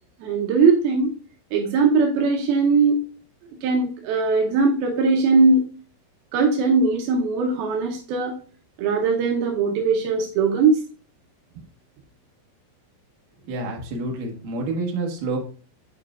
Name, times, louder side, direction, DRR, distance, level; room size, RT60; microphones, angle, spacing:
voice 1, 0.2-1.1 1.5-3.0 3.6-5.7 6.3-8.4 8.8-10.8, right 4 dB, 85° right, 1 dB, 2.2 m, -20 dB
voice 2, 13.4-15.4, right 2 dB, 65° right, 0 dB, 2.3 m, -28 dB
8.9 x 4.9 x 2.4 m, 0.38 s
omnidirectional pair, 5.4 m